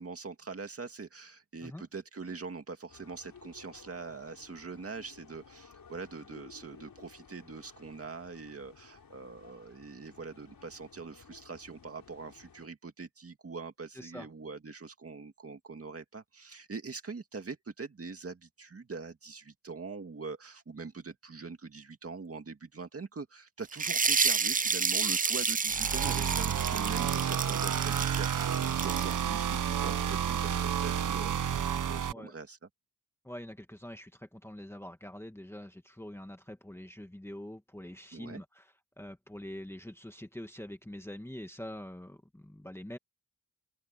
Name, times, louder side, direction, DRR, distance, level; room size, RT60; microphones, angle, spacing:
voice 1, 0.0-32.6 38.1-38.4, right 4 dB, 40° right, 2.2 m, -43 dB
sound 1, 2.9-12.7, left 6 dB, 65° left, 5.2 m, -56 dB
voice 2, 13.9-14.3 32.1-32.3 33.2-38.6 39.0-43.0, left 1 dB, 5° left, 1.6 m, -45 dB
sound 2, 23.7-29.2, right 5 dB, 25° right, 0.4 m, -30 dB
sound 3, 25.7-32.1, right 9 dB, 60° right, 0.8 m, -30 dB
open air
wide cardioid pair, 170°, 36 cm